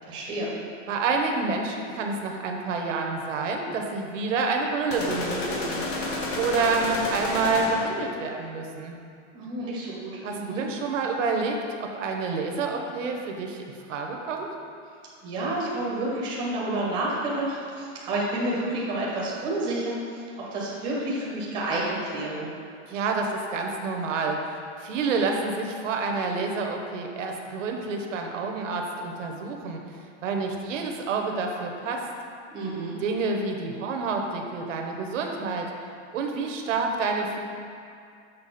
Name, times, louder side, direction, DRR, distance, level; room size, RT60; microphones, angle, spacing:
voice 1, 0.0-0.5 9.3-10.7 15.2-22.5 32.5-33.0, right 1 dB, 10° right, -5 dB, 0.8 m, -30 dB
voice 2, 0.9-5.8 6.4-9.0 10.2-14.5 22.9-24.4 24.8-29.8 30.2-32.0 33.0-35.7 36.1-37.4, right 4 dB, 80° right, 2 dB, 1.0 m, -28 dB
sound 1, 4.9-8.1, left 2 dB, 85° left, 1.5 m, -30 dB
6.8 x 4.9 x 4.2 m, 2.4 s
supercardioid pair, 180°, 37 cm